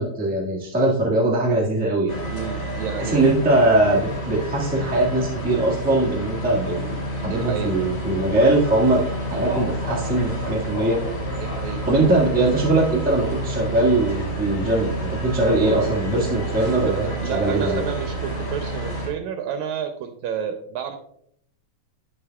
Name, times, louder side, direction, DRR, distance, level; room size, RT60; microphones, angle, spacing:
voice 1, 0.0-2.2 3.0-11.0 11.9-14.9 15.2-17.8, right 2 dB, 10° right, -5 dB, 0.4 m, -21 dB
sound 1, 2.1-19.1, right 1 dB, 25° left, 2.7 m, -29 dB
voice 2, 2.3-3.3 7.2-7.7 11.3-11.9 16.9-21.0, right 8 dB, 80° right, 6 dB, 1.9 m, -30 dB
13.0 x 5.2 x 2.3 m, 0.69 s
omnidirectional pair, 3.4 m